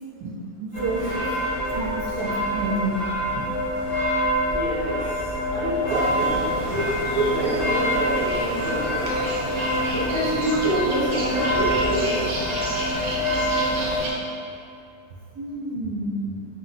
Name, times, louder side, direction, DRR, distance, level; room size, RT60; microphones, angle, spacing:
sound 1, 0.7-14.0, equal, 60° left, 1.5 m, -26 dB
voice 1, 0.8-1.4 1.7-3.0 3.4-3.5 5.9-6.0 7.1-7.2 15.3-16.5, right 3 dB, 75° right, -2 dB, 1.1 m, -28 dB
voice 2, 4.4-6.9 7.3-9.1 9.9-12.3, equal, 35° left, -12 dB, 0.7 m, -27 dB
sound 2, 5.9-14.1, right 1 dB, 55° right, 0.8 m, -32 dB
4.4 x 2.1 x 3.9 m, 2.5 s
omnidirectional pair, 1.8 m